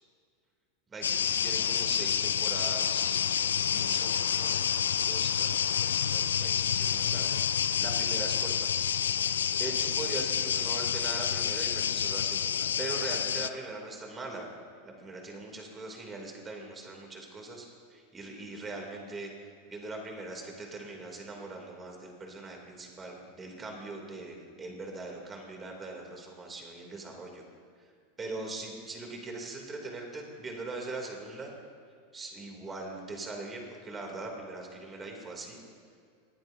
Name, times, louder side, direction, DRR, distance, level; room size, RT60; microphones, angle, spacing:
voice 1, 0.9-3.2 3.7-7.4 7.8-8.7 9.6-14.5 14.8-27.4 28.2-31.5 32.1-35.6, right 3 dB, 20° right, 1 dB, 2.9 m, -41 dB
sound 1, 1.0-13.5, left 8 dB, 80° left, 0.4 m, -28 dB
21.0 x 9.4 x 2.8 m, 2.2 s
hypercardioid pair, 90°, 0 cm